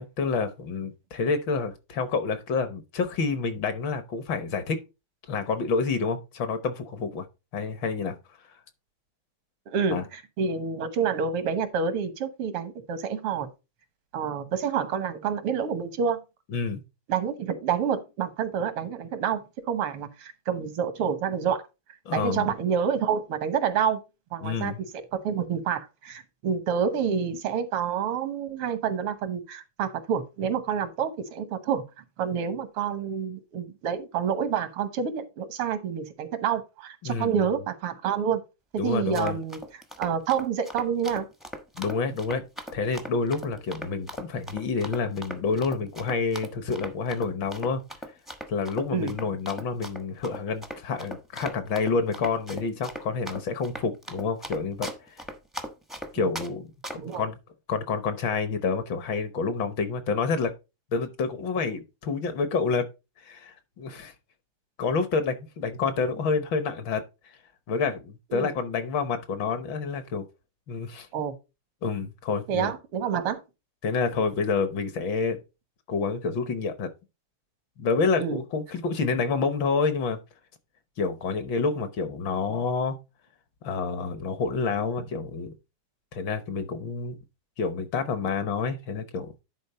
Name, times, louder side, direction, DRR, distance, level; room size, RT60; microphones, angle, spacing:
voice 1, 0.0-4.8 5.3-7.2 7.5-8.2 8.4-8.5 9.9-10.0 16.5-16.8 22.1-22.5 24.4-24.8 37.0-37.4 38.8-39.4 41.8-42.5 42.7-47.8 48.5-54.9 56.1-56.7 57.2-57.4 57.7-60.5 60.9-62.9 63.2-64.1 64.8-67.0 67.7-70.2 70.7-71.1 71.8-72.7 73.8-75.4 75.9-76.9 77.8-80.2 81.0-83.0 83.6-85.5 86.1-87.2 87.6-89.3, left 4 dB, 65° left, 1.7 m, -28 dB
voice 2, 9.7-13.5 14.1-16.2 17.1-21.6 22.1-24.0 24.3-24.7 25.1-31.8 32.2-38.4 38.7-39.6 40.0-41.3 48.9-49.1 56.2-56.3 57.0-57.3 68.3-68.5 71.1-71.3 72.5-73.4 78.2-78.4, right 7 dB, 85° right, 2.0 m, -28 dB
Run, 38.9-56.5 56.8-57.2, equal, ahead, 0.5 m, -38 dB
10.5 x 4.3 x 4.1 m
omnidirectional pair, 2.4 m